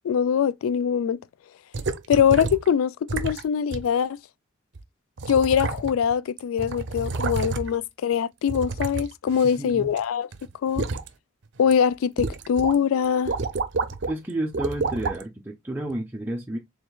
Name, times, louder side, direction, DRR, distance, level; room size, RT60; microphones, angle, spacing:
voice 1, 0.0-1.2 2.1-4.2 5.3-10.3 10.6-10.9 11.6-13.3, left 8 dB, 90° left, 0.3 m, -23 dB
sound 1, 1.7-2.7 3.1-3.4 3.7-3.9 4.8-4.9 5.2-6.1 6.4-7.9 8.5-10.0 10.3-11.1 11.6-11.7 12.2-12.8 13.0-14.1 14.5-15.2 15.9-16.0, right 3 dB, 60° right, 0.6 m, -29 dB
voice 2, 9.6-9.9 14.1-16.6, right 1 dB, 10° right, 0.5 m, -31 dB
4.8 x 3.5 x 2.2 m
head